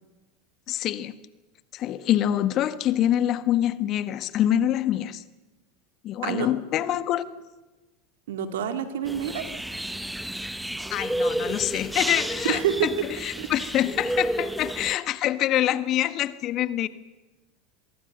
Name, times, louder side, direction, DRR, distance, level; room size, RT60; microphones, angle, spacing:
voice 1, 0.7-1.1 1.7-5.2 6.0-7.2 10.9-12.6 13.2-16.9, left 12 dB, 45° left, 15 dB, 1.3 m, -25 dB
voice 2, 8.3-9.5 12.5-12.9 13.4-13.5, right 10 dB, 70° right, 8 dB, 2.6 m, -27 dB
sound 1, 9.1-14.9, right 1 dB, 5° right, 0.9 m, -31 dB
24.5 x 22.0 x 6.8 m, 1.2 s
hypercardioid pair, 85°, 0 cm